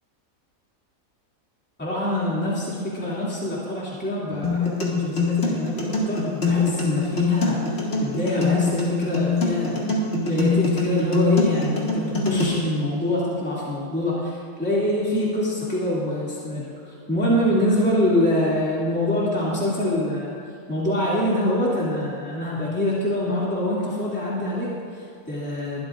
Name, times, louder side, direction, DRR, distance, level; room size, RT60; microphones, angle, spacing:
voice 1, 1.8-9.9 10.3-16.7 17.1-20.3 20.7-25.8, left 1 dB, 5° left, -7 dB, 2.5 m, -25 dB
sound 1, 4.4-12.4, left 4 dB, 50° left, 2.4 m, -23 dB
21.5 x 12.5 x 2.5 m, 2.4 s
omnidirectional pair, 1.5 m